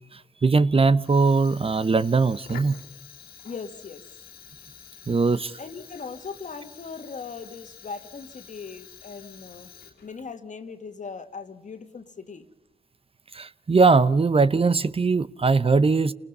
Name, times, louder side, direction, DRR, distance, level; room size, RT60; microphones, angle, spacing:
voice 1, 0.4-2.8 5.1-5.5 13.3-16.1, right 4 dB, 40° right, 0.8 m, -20 dB
Fire, 1.0-10.3, left 7 dB, 90° left, 2.9 m, -47 dB
voice 2, 3.4-4.0 5.6-9.7 10.0-12.5, left 5 dB, 55° left, 1.9 m, -39 dB
28.5 x 20.0 x 5.5 m
supercardioid pair, 45°, 15 cm